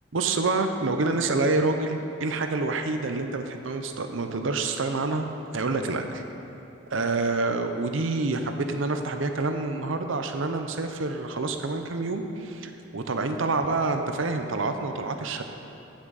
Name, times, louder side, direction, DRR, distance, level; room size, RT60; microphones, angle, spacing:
voice 1, 0.1-5.3 5.5-6.2 6.9-15.4, right 3 dB, 75° right, 6 dB, 0.7 m, -27 dB
15.5 x 6.2 x 4.0 m, 2.9 s
head